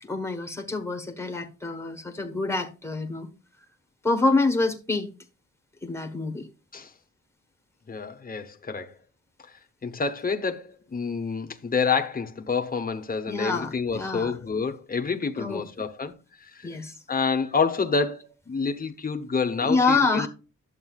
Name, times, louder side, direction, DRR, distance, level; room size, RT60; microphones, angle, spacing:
voice 1, 0.0-3.3 4.0-5.1 5.8-6.5 13.3-14.3 15.4-15.6 16.6-16.9 19.7-20.3, left 3 dB, 10° left, 1.3 m, -26 dB
voice 2, 7.9-9.0 9.4-9.5 9.8-16.7 17.1-20.3, left 5 dB, 25° left, 0.9 m, -28 dB
11.0 x 8.2 x 2.4 m
wide cardioid pair, 175°, 32 cm